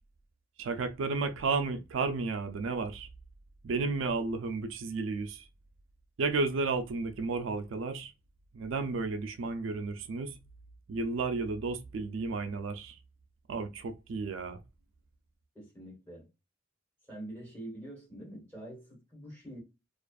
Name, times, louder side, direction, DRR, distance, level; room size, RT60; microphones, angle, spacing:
voice 1, 0.6-3.1 3.6-5.5 6.2-8.1 8.5-10.4 10.9-13.0 13.5-14.6, right 3 dB, 70° right, 0.4 m, -32 dB
voice 2, 15.5-16.3 17.1-19.6, right 1 dB, 10° left, 1.3 m, -45 dB
2.4 x 2.3 x 2.3 m
head